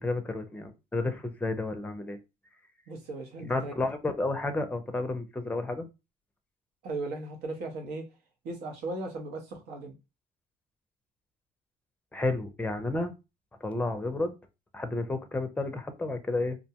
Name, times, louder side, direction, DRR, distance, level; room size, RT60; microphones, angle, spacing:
voice 1, 0.0-2.2 3.4-5.9 12.1-13.1 13.6-14.3 14.7-16.6, left 2 dB, 10° left, 7 dB, 0.5 m, -31 dB
voice 2, 2.9-3.7 6.8-8.0 8.4-9.9, right 2 dB, 85° right, 3 dB, 0.9 m, -37 dB
2.6 x 2.1 x 2.8 m, 0.26 s
cardioid pair, 110°, 17 cm